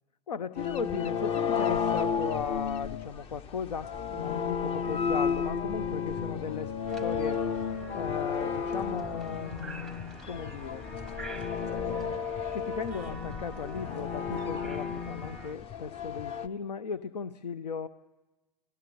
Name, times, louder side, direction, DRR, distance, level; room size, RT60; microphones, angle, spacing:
voice 1, 0.3-6.7 7.0-9.9 10.2-10.8 11.6-17.9, left 6 dB, 75° left, 16 dB, 0.7 m, -37 dB
sound 1, 0.6-16.5, left 6 dB, 30° left, 0.8 m, -33 dB
sound 2, 6.9-15.6, right 2 dB, ahead, 0.9 m, -45 dB
30.0 x 18.5 x 7.0 m, 1.2 s
hypercardioid pair, 110°, 21 cm